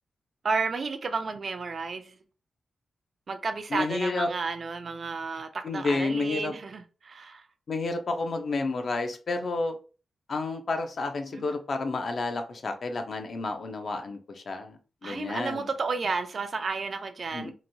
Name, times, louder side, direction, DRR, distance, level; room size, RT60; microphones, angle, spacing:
voice 1, 0.4-2.1 3.3-7.4 11.3-11.4 15.0-17.5, right 4 dB, 45° right, 0.3 m, -32 dB
voice 2, 3.7-4.3 5.6-6.5 7.7-9.8 10.3-15.7 17.3-17.5, left 3 dB, 50° left, 0.5 m, -30 dB
2.9 x 2.2 x 2.6 m
wide cardioid pair, 135°, 0 cm